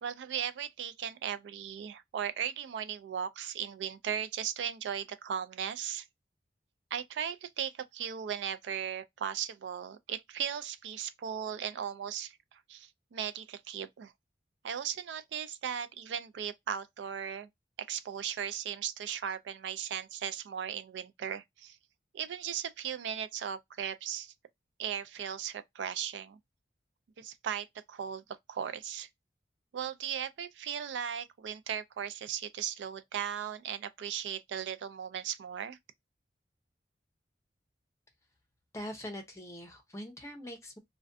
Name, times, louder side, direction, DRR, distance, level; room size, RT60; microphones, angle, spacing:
voice 1, 0.0-6.1 6.9-14.1 14.6-17.5 17.9-21.8 22.1-24.3 24.8-26.4 27.2-28.2 28.5-29.1 29.7-35.8, right 8 dB, 90° right, 0.3 m, -37 dB
voice 2, 38.7-40.8, equal, 15° left, 0.6 m, -42 dB
2.4 x 2.2 x 2.4 m
head